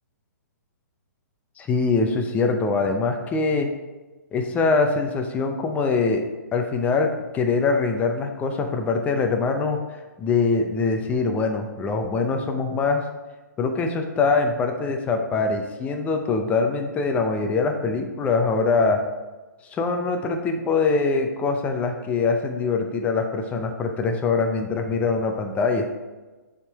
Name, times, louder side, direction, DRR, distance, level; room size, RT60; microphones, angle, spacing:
voice 1, 1.6-3.7 4.3-6.2 6.5-9.8 10.2-13.0 13.6-19.0 19.7-25.9, left 4 dB, 15° left, 4 dB, 0.6 m, -23 dB
7.2 x 3.7 x 4.7 m, 1.2 s
hypercardioid pair, 145°, 10 cm